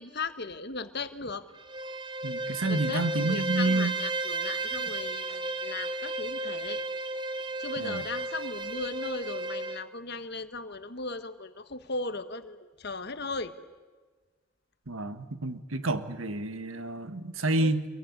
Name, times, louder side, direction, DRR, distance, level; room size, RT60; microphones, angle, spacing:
voice 1, 0.0-1.4 2.6-6.8 7.6-13.5 17.6-17.7, left 3 dB, 55° left, 10 dB, 1.5 m, -37 dB
Bowed string instrument, 1.5-9.9, right 2 dB, 25° right, 1.0 m, -33 dB
voice 2, 2.2-3.9 7.8-8.0 14.9-17.9, right 2 dB, 85° right, 11 dB, 1.5 m, -29 dB
26.5 x 22.5 x 9.7 m, 1.4 s
head